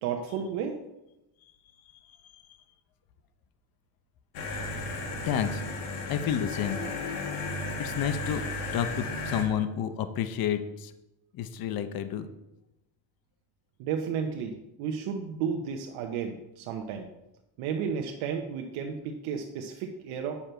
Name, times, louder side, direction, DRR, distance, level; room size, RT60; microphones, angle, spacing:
voice 1, 0.0-0.8 13.8-17.1 17.6-20.4, right 7 dB, 85° right, 3 dB, 1.0 m, -33 dB
sound 1, 4.3-9.4, left 2 dB, 85° left, 1.9 m, -34 dB
voice 2, 5.2-5.6 6.1-6.8 7.8-8.4 8.7-10.9 11.3-12.3, left 9 dB, 45° left, 10 dB, 0.8 m, -30 dB
8.5 x 6.7 x 4.5 m, 0.94 s
cardioid pair, 125°, 48 cm